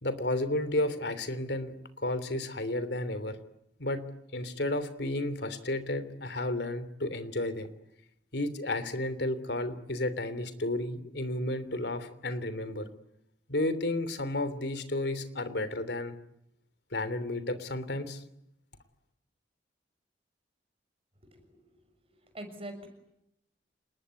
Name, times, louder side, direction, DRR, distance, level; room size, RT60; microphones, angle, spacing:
voice 1, 0.0-3.4 3.8-4.0 4.3-7.7 8.3-12.9 13.5-16.1 16.9-18.2, left 1 dB, 65° left, 13 dB, 3.2 m, -32 dB
voice 2, 21.2-21.6 22.3-22.9, right 1 dB, 30° right, 7 dB, 6.5 m, -43 dB
29.5 x 20.5 x 9.7 m, 0.81 s
head